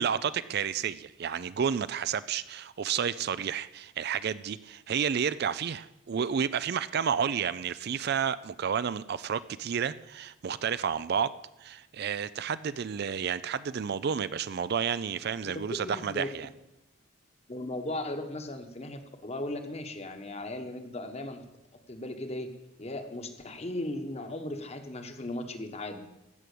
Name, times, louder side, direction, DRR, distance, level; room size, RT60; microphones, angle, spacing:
voice 1, 0.0-11.3 11.6-16.5, right 7 dB, 50° right, 16 dB, 0.4 m, -31 dB
voice 2, 15.4-16.3 17.5-21.5 21.9-22.5 22.8-26.0, left 1 dB, 30° left, 7 dB, 1.2 m, -37 dB
14.5 x 6.2 x 8.4 m, 0.93 s
head